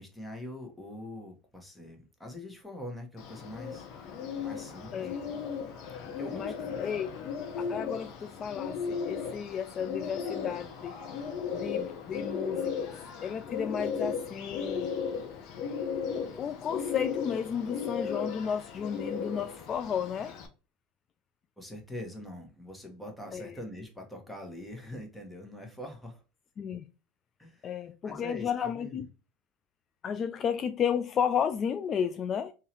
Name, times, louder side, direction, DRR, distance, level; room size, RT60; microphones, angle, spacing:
voice 1, 0.0-3.9 4.4-5.5 6.2-6.9 21.6-26.2 27.4-27.7 28.0-29.1, left 1 dB, 5° left, 1.4 m, -43 dB
Bird, 3.2-20.5, left 6 dB, 60° left, 0.9 m, -36 dB
voice 2, 6.8-7.1 7.7-11.0 11.5-14.9 16.1-20.4 23.3-23.5 26.6-26.9 27.6-29.1 30.0-32.5, left 7 dB, 40° left, 0.3 m, -33 dB
3.8 x 2.8 x 3.0 m
hypercardioid pair, 85°, 0 cm